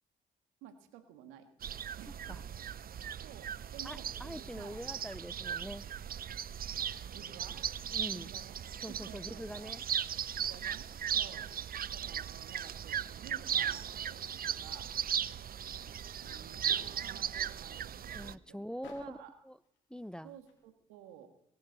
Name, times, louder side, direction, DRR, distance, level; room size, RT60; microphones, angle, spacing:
voice 1, 0.6-1.5 2.0-2.4 3.2-4.9 7.1-7.6 8.1-8.6 8.9-9.7 10.4-11.5 11.9-14.9 16.2-19.4 20.2-21.3, right 10 dB, 90° right, 8 dB, 1.8 m, -53 dB
sound 1, 1.6-18.3, right 9 dB, 50° right, 0.6 m, -37 dB
voice 2, 3.8-5.8 7.9-8.3 8.8-9.8 18.1-19.2 19.4-19.6 19.9-20.4, equal, 5° left, 18 dB, 0.6 m, -43 dB
sound 2, 15.8-20.7, left 4 dB, 75° left, 4.1 m, -65 dB
23.0 x 11.5 x 4.1 m, 0.78 s
supercardioid pair, 50°, 20 cm